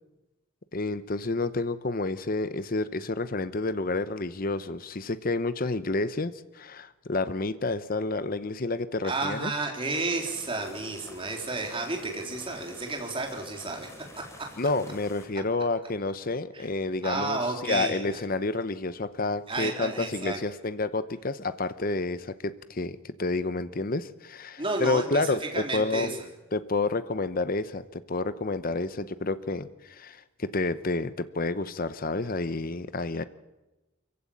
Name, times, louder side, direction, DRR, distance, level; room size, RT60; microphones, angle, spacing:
voice 1, 0.7-9.5 14.6-26.2 26.5-33.2, left 3 dB, 40° left, 13 dB, 0.8 m, -29 dB
voice 2, 9.0-13.9 14.1-14.2 16.5-16.7 17.0-18.2 19.5-20.4 24.6-26.1, right 3 dB, 25° right, 1 dB, 3.6 m, -31 dB
sound 1, 9.9-15.3, left 2 dB, 15° left, 3.2 m, -49 dB
24.0 x 15.5 x 8.7 m, 1.0 s
head